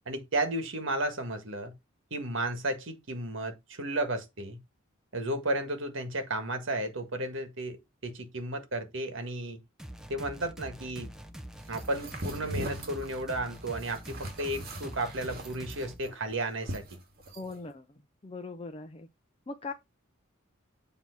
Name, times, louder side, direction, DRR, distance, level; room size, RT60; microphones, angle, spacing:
voice 1, 0.0-1.7 2.1-4.6 5.1-9.6 10.1-11.1 11.7-17.0, right 1 dB, 65° right, 1.6 m, -33 dB
sound 1, 9.8-16.0, equal, 5° right, 0.8 m, -44 dB
sound 2, 11.7-17.5, right 1 dB, 50° right, 2.0 m, -41 dB
voice 2, 17.3-17.9 18.2-19.1 19.5-19.7, left 3 dB, 30° left, 0.6 m, -40 dB
7.3 x 2.9 x 5.8 m
head